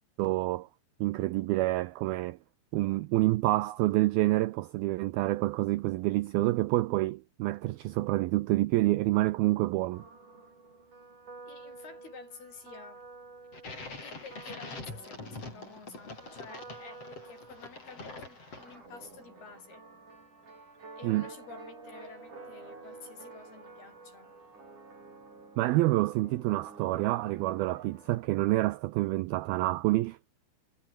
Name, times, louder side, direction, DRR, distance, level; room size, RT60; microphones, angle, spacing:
voice 1, 0.2-0.7 1.0-2.4 2.7-10.1 21.0-21.3 25.6-30.2, right 18 dB, 80° right, 2.2 m, -27 dB
sound 1, 9.9-28.5, right 3 dB, 45° right, 9.4 m, -50 dB
voice 2, 11.5-13.0 14.0-19.8 21.0-24.3, left 5 dB, 60° left, 7.9 m, -51 dB
sound 2, 13.5-19.0, left 3 dB, 35° left, 7.3 m, -44 dB
omnidirectional pair, 5.1 m